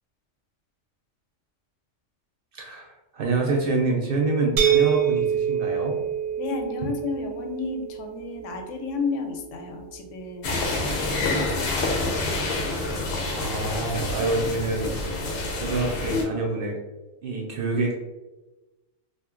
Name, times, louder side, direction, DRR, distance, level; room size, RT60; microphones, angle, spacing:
voice 1, 2.5-6.0 13.3-15.0 15.6-16.8 17.2-18.0, right 3 dB, 60° right, 0 dB, 0.6 m, -26 dB
sound 1, 4.6-10.3, right 9 dB, 90° right, 1.0 m, -27 dB
voice 2, 6.4-10.7 11.1-12.0, left 4 dB, 85° left, 4 dB, 0.9 m, -32 dB
sound 2, 10.4-16.3, left 2 dB, 65° left, 0.7 m, -27 dB
2.5 x 2.1 x 3.6 m, 1.1 s
omnidirectional pair, 1.2 m